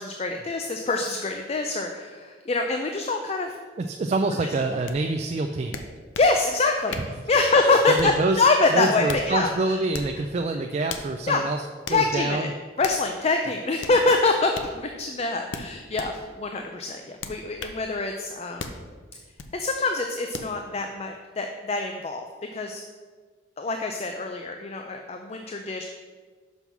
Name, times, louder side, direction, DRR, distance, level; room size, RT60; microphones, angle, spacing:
voice 1, 0.0-3.5 4.4-4.8 6.2-7.0 7.3-9.8 11.3-11.4 11.9-12.5 12.8-18.8 19.5-22.3 22.5-22.8 23.6-25.8, left 3 dB, 35° left, 4 dB, 0.4 m, -25 dB
voice 2, 3.8-5.8 6.9-7.0 7.9-8.4 8.7-11.6 11.9-12.5, right 2 dB, 35° right, 4 dB, 0.3 m, -26 dB
sound 1, 4.9-5.0 5.7-6.3 6.9-7.2 8.0-8.3 8.8-9.3 9.9-10.2 10.9-11.1 11.9-12.0 12.8-13.1 13.8-14.0 14.5-14.7 15.5-16.1 17.2-17.8 18.6-18.8 19.4-19.5 20.3-20.5, left 4 dB, 85° left, 0.6 m, -36 dB
6.0 x 5.4 x 6.0 m, 1.5 s
head